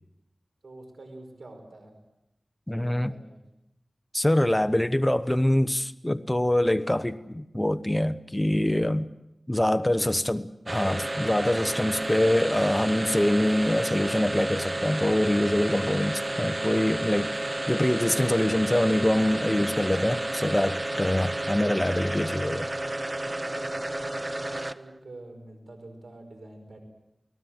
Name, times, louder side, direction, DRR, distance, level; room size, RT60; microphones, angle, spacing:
voice 1, 0.6-1.9 2.7-3.4 9.9-10.2 24.4-26.8, right 2 dB, 85° right, 4 dB, 5.2 m, -47 dB
voice 2, 2.7-3.1 4.1-9.1 9.5-22.7, left 1 dB, 15° left, 10 dB, 1.0 m, -25 dB
sound 1, 10.7-25.0, right 1 dB, 30° right, 0.9 m, -31 dB
29.0 x 18.5 x 7.8 m, 0.91 s
wide cardioid pair, 55°, 0 cm